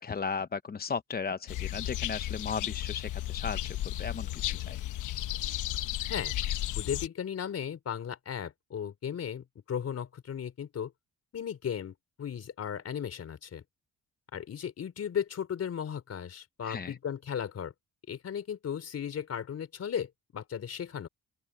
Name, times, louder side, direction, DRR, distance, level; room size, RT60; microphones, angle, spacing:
voice 1, 0.0-4.8 16.6-16.9, left 5 dB, 30° left, 0.9 m, -36 dB
sound 1, 1.5-7.1, left 13 dB, 80° left, 1.1 m, -34 dB
voice 2, 6.7-10.9 11.3-13.6 14.3-17.7 18.1-21.1, left 8 dB, 55° left, 4.2 m, -36 dB
open air
cardioid pair, 90°, 30 cm